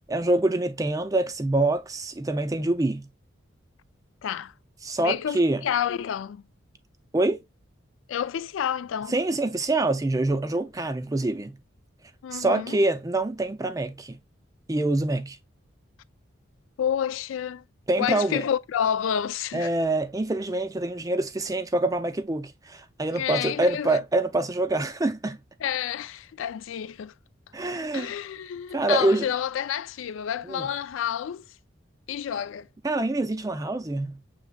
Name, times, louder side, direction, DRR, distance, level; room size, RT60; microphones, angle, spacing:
voice 1, 0.1-3.1 4.8-5.7 7.1-7.4 9.1-11.6 12.3-14.2 14.7-15.4 17.9-18.4 19.5-25.4 27.5-28.1 28.7-29.3 30.4-30.7 32.8-34.2, right 2 dB, 15° right, 0.4 m, -25 dB
voice 2, 4.2-4.5 5.0-6.4 8.1-9.1 12.2-12.8 16.8-17.6 18.0-19.7 23.1-24.0 25.6-27.1 27.9-31.5 32.1-32.7, left 9 dB, 80° left, 0.3 m, -29 dB
6.7 x 3.3 x 2.2 m
head